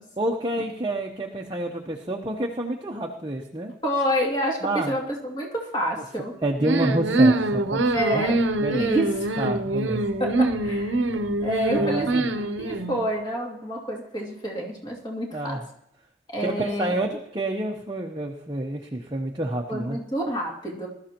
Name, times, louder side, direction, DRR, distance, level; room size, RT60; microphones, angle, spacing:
voice 1, 0.2-3.7 4.6-4.9 6.4-8.2 8.6-8.9 9.4-10.0 11.7-12.3 15.3-15.6 16.4-20.0, right 1 dB, 25° right, 0 dB, 0.9 m, -28 dB
voice 2, 3.8-6.3 7.9-8.4 8.7-9.4 10.2-11.0 11.4-15.6 16.3-16.9 19.7-20.9, equal, 25° left, -2 dB, 2.6 m, -28 dB
sound 1, 6.6-13.0, right 2 dB, 75° right, 0.8 m, -24 dB
20.5 x 13.0 x 3.0 m, 0.80 s
head